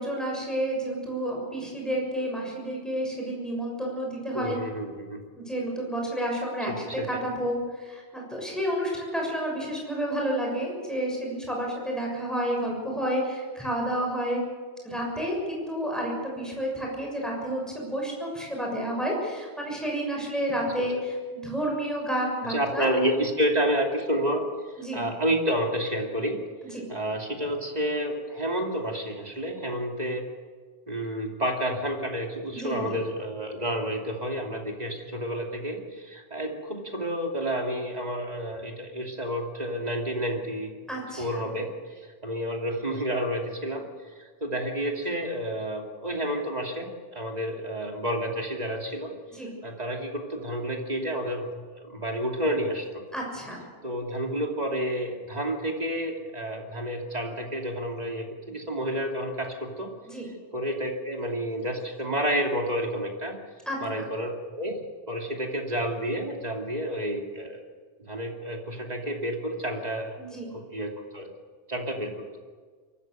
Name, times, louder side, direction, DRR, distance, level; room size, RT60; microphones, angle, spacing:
voice 1, 0.0-4.6 5.3-6.7 7.1-14.4 14.8-23.0 24.8-25.0 26.6-26.8 32.5-33.0 40.9-41.5 49.3-49.5 53.1-53.6 60.0-60.3 63.7-64.1 70.2-70.5, equal, ahead, -1 dB, 6.7 m, -30 dB
voice 2, 4.3-5.2 6.7-7.2 22.4-24.4 24.9-26.4 26.9-30.2 30.9-40.7 41.2-41.7 42.2-43.8 44.4-49.1 49.6-53.0 53.8-59.9 60.5-63.4 63.8-64.8 65.1-67.6 68.0-70.2 70.5-71.3 71.7-72.3, equal, 35° right, 1 dB, 2.8 m, -30 dB
23.5 x 14.0 x 7.9 m, 1.5 s
omnidirectional pair, 1.2 m